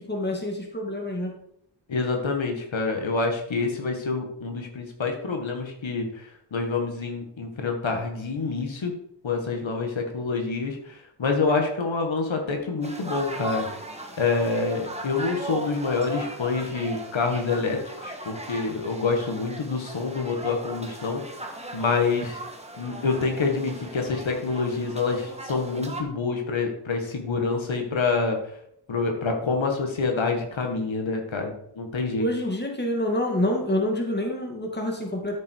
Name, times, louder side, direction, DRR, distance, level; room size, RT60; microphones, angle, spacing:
voice 1, 0.0-1.4 32.2-35.4, left 1 dB, 20° left, 1 dB, 2.4 m, -27 dB
voice 2, 1.9-8.9 9.2-13.7 14.2-21.2 21.7-22.4 22.8-28.4 28.9-32.3, left 4 dB, 70° left, 3 dB, 2.0 m, -27 dB
sound 1, 12.8-26.0, right 1 dB, 15° right, 1.7 m, -38 dB
13.0 x 7.5 x 4.7 m, 0.73 s
wide cardioid pair, 140°, 48 cm